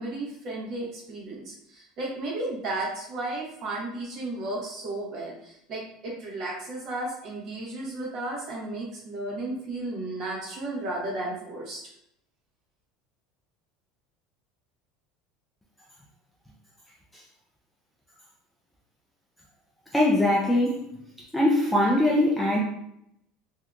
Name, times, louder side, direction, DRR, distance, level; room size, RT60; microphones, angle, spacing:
voice 1, 0.0-11.8, right 2 dB, 35° right, -3 dB, 1.0 m, -34 dB
voice 2, 19.9-20.9 21.3-22.6, left 1 dB, 5° left, -4 dB, 0.3 m, -22 dB
3.6 x 2.7 x 2.3 m, 0.76 s
cardioid pair, 180°, 0 cm